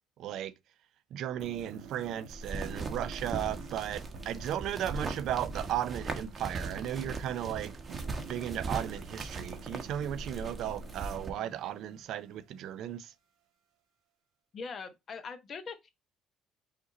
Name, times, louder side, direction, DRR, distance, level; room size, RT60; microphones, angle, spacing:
voice 1, 0.2-0.5 1.1-7.8 8.3-13.1, right 11 dB, 70° right, 0.5 m, -35 dB
sound 1, 1.4-12.6, right 5 dB, 85° right, 1.1 m, -49 dB
sound 2, 2.3-11.3, right 3 dB, 25° right, 0.9 m, -39 dB
voice 2, 14.5-15.9, left 5 dB, 40° left, 0.9 m, -41 dB
5.0 x 2.6 x 4.0 m
cardioid pair, 120°, 0 cm